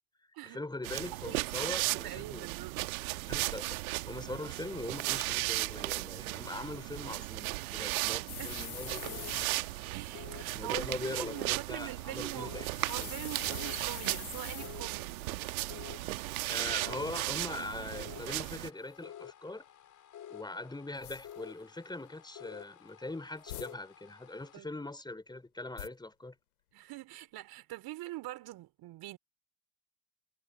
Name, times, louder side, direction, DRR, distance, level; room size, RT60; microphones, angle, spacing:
voice 1, 0.2-2.5 3.3-3.8 4.1-9.6 10.5-12.7 13.0-13.1 16.5-19.6 20.3-26.3, left 2 dB, 10° left, 4.3 m, -41 dB
sound 1, 0.8-18.7, right 20 dB, 75° right, 1.5 m, -36 dB
voice 2, 1.1-2.8 7.8-8.6 9.9-12.6 12.9-15.2 24.5-24.7 26.7-29.2, right 16 dB, 55° right, 4.1 m, -44 dB
sound 2, 8.3-9.6 12.7-14.8 18.4-18.6 21.0-21.4 23.4-23.7 25.8-25.9, left 14 dB, 80° left, 3.1 m, -44 dB
sound 3, 8.6-24.6, left 10 dB, 45° left, 5.1 m, -52 dB
hypercardioid pair, 65°, 43 cm